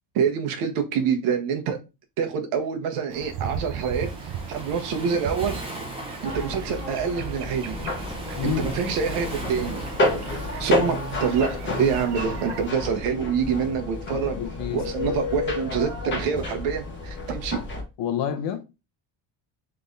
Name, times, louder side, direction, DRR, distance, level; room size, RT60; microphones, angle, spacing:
voice 1, 0.1-1.8 2.2-5.6 6.2-7.8 8.4-9.8 10.4-14.4 14.7-17.6, right 6 dB, 85° right, 1.3 m, -26 dB
sound 1, 3.1-12.7, right 8 dB, 55° right, 0.7 m, -37 dB
Waves surf, 3.9-12.1, right 1 dB, 10° right, 0.8 m, -39 dB
sound 2, 6.2-17.8, left 2 dB, 25° left, 0.8 m, -30 dB
voice 2, 8.4-8.8 14.1-15.2 18.0-18.6, left 9 dB, 60° left, 0.7 m, -29 dB
3.9 x 3.4 x 3.9 m
cardioid pair, 175°, 50 cm